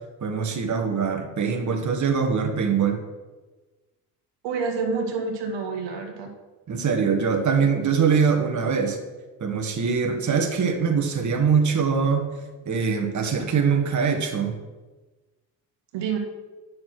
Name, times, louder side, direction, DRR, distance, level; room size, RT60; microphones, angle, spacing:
voice 1, 0.2-3.0 6.7-9.0 9.4-12.3 12.6-14.5, right 6 dB, 40° right, 4 dB, 1.6 m, -23 dB
voice 2, 4.4-6.3 15.9-16.2, right 5 dB, 65° right, 4 dB, 1.8 m, -28 dB
9.4 x 6.4 x 6.2 m, 1.2 s
hypercardioid pair, 60°, 46 cm